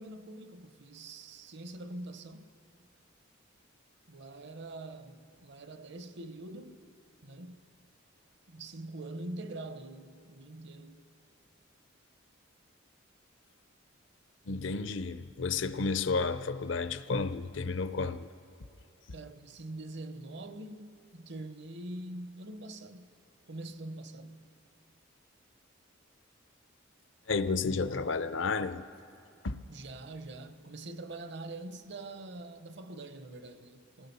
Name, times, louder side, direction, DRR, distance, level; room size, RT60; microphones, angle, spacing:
voice 1, 0.0-2.5 4.1-6.8 7.2-7.6 8.5-11.0 19.1-23.1 23.5-24.4 29.7-34.1, right 2 dB, 55° right, 0.9 m, -44 dB
voice 2, 14.5-18.3 27.3-28.8 29.4-29.6, left 4 dB, 60° left, 0.6 m, -31 dB
27.5 x 18.0 x 5.5 m
head